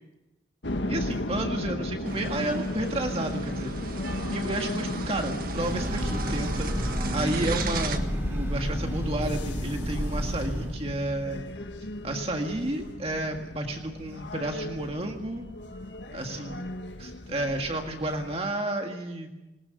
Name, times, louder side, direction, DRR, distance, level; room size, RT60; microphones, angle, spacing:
sound 1, 0.6-18.4, left 1 dB, 85° left, 1.7 m, -35 dB
voice 1, 0.9-11.5 12.0-15.5 16.1-16.6 17.0-19.3, right 1 dB, 35° right, 3 dB, 1.8 m, -32 dB
sound 2, 2.0-8.0, right 4 dB, 55° right, 1.7 m, -37 dB
Breathing / Train, 5.3-10.9, equal, 15° right, 5.2 m, -31 dB
19.5 x 19.5 x 8.2 m, 0.97 s
head